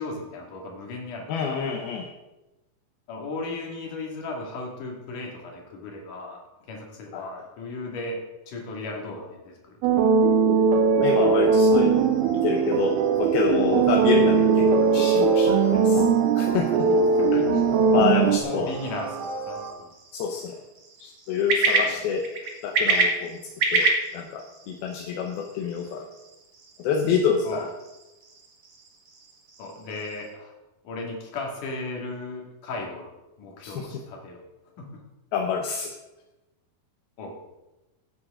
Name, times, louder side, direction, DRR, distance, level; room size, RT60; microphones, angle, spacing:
voice 1, 0.0-1.6 3.1-10.1 16.9-17.5 18.1-19.9 21.9-22.1 27.4-27.7 29.6-30.5 30.8-33.1 33.4-34.4 34.8-35.0 37.2-37.4, left 2 dB, 60° left, 0 dB, 3.7 m, -36 dB
voice 2, 1.3-2.1 7.1-7.2 11.0-12.0 12.4-12.9 13.2-16.0 16.4-16.9 17.9-18.7 20.1-20.5 21.0-22.2 22.6-23.4 23.7-23.9 24.1-26.1 26.8-27.7 33.6-33.9 35.3-35.9, left 6 dB, 80° left, 2 dB, 2.8 m, -27 dB
sound 1, 9.8-18.4, right 5 dB, 85° right, 2.7 m, -20 dB
sound 2, 11.7-19.7, right 6 dB, 70° right, 3.0 m, -31 dB
sound 3, 18.6-30.3, right 3 dB, 45° right, 2.3 m, -30 dB
17.0 x 9.5 x 3.8 m, 1.0 s
omnidirectional pair, 4.4 m